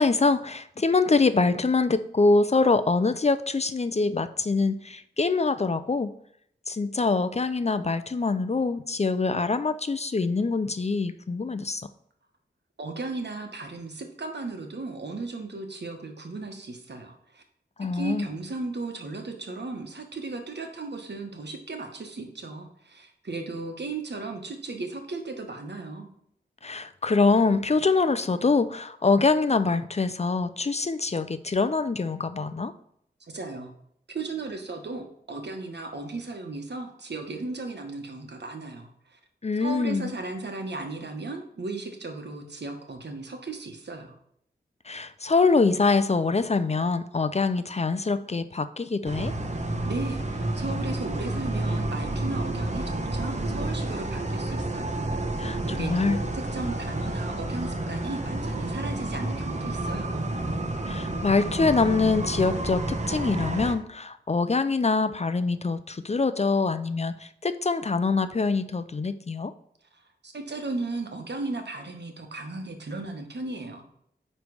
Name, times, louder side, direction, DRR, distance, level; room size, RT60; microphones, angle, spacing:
voice 1, 0.0-6.1 6.7-11.9 17.8-18.3 26.6-32.7 39.4-40.1 44.9-49.3 55.4-56.2 60.9-69.5, left 4 dB, 35° left, 12 dB, 0.5 m, -24 dB
voice 2, 12.8-17.4 17.9-26.1 33.3-33.7 34.1-39.2 39.6-44.1 49.8-55.0 55.7-60.3 70.2-73.8, right 3 dB, 65° right, 4 dB, 1.3 m, -36 dB
sound 1, 49.0-63.7, right 2 dB, 35° right, 1.1 m, -30 dB
9.2 x 3.3 x 4.8 m, 0.70 s
cardioid pair, 40°, 19 cm